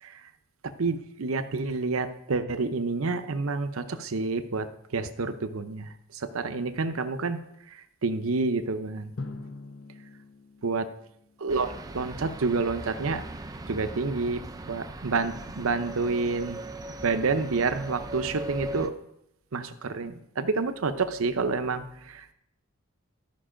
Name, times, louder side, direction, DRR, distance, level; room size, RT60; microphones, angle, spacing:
voice 1, 0.8-4.7 4.9-5.9 6.2-7.4 8.0-9.1 10.6-10.9 11.4-13.2 13.7-14.4 14.7-16.6 17.0-18.9 19.5-21.8, right 4 dB, 70° right, 10 dB, 0.7 m, -28 dB
Drum, 9.2-11.8, left 3 dB, 60° left, 0.8 m, -43 dB
sound 1, 11.5-18.9, right 2 dB, 15° right, 0.4 m, -39 dB
12.5 x 5.4 x 5.0 m, 0.77 s
head